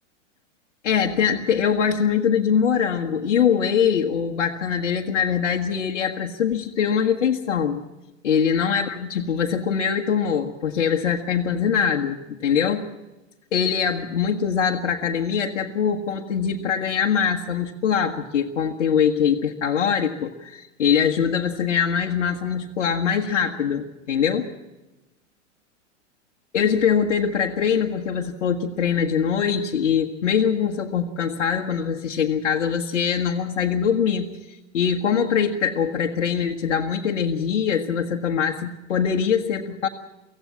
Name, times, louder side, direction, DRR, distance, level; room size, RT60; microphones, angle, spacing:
voice 1, 0.8-7.8 8.2-12.9 13.5-24.5 26.5-39.9, left 7 dB, 65° left, 0 dB, 1.5 m, -23 dB
24.5 x 16.0 x 7.3 m, 1.0 s
figure-of-eight pair, 100°, 37 cm